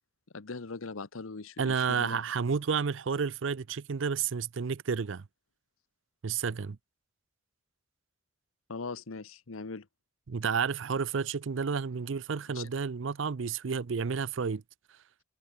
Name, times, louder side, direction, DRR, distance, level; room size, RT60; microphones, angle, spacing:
voice 1, 0.3-2.2 8.7-9.9 12.5-12.7, left 4 dB, 85° left, 1.0 m, -40 dB
voice 2, 1.6-5.2 6.2-6.8 10.3-14.6, right 6 dB, 65° right, 0.5 m, -31 dB
head